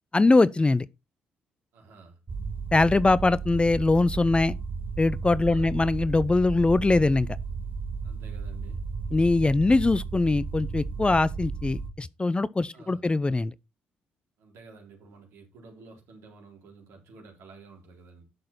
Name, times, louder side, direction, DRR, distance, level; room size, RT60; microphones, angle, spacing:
voice 1, 0.1-0.9 2.7-4.5 5.0-7.3 9.1-13.5, left 3 dB, 20° left, 0.6 m, -22 dB
voice 2, 1.7-2.2 5.4-5.7 8.0-8.8 12.7-13.0 14.4-18.2, right 4 dB, 65° right, 4.0 m, -51 dB
sound 1, 2.3-11.9, right 4 dB, 40° right, 2.2 m, -34 dB
11.5 x 6.4 x 4.1 m
hypercardioid pair, 45°, 5 cm